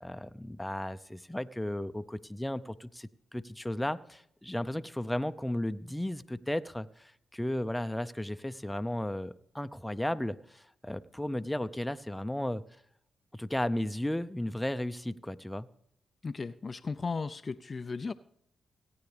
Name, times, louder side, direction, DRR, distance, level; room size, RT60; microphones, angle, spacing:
voice 1, 0.0-12.6 13.3-15.7, left 1 dB, 10° left, 11 dB, 0.6 m, -34 dB
voice 2, 16.2-18.1, left 4 dB, 45° left, 11 dB, 0.4 m, -36 dB
17.0 x 9.5 x 3.4 m, 0.73 s
supercardioid pair, 45°, 0 cm